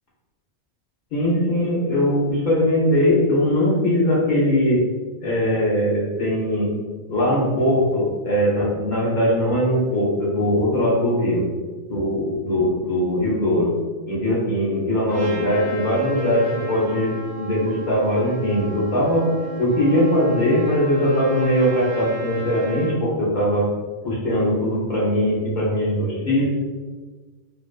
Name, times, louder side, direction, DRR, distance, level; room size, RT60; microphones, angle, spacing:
voice 1, 1.1-4.8 5.2-6.7 7.1-11.5 11.9-13.7 14.1-19.2 19.6-23.7 24.0-26.5, equal, 50° left, -6 dB, 0.7 m, -20 dB
Trumpet, 15.1-22.9, right 2 dB, 55° right, 0.9 m, -35 dB
2.5 x 2.2 x 2.3 m, 1.3 s
omnidirectional pair, 1.2 m